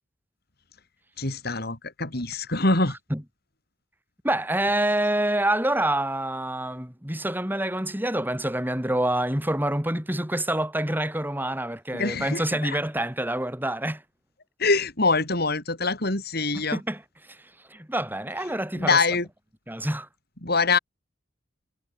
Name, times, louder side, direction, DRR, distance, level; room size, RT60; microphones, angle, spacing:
voice 1, 1.2-2.9 11.9-12.8 14.6-16.8 18.8-19.3 20.4-20.8, left 3 dB, 50° left, 5.1 m, -24 dB
voice 2, 4.2-14.0 16.5-17.0 17.3-17.4 17.7-19.0 19.7-20.1, right 1 dB, 10° right, 5.0 m, -27 dB
head